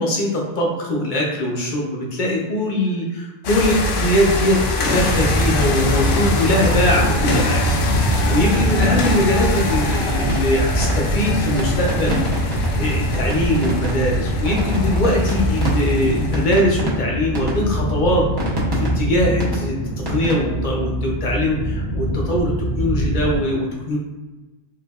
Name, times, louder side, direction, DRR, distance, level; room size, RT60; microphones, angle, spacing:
voice 1, 0.0-4.6 4.8-12.3 12.8-18.3 18.8-19.8 20.1-24.0, left 1 dB, 40° left, -2 dB, 0.8 m, -21 dB
sound 1, 3.4-16.6, left 2 dB, 70° left, 0.9 m, -24 dB
sound 2, 4.5-23.4, equal, 45° right, 1.7 m, -23 dB
sound 3, 5.6-20.3, equal, 25° right, 0.7 m, -30 dB
4.7 x 2.5 x 2.4 m, 1.1 s
omnidirectional pair, 1.4 m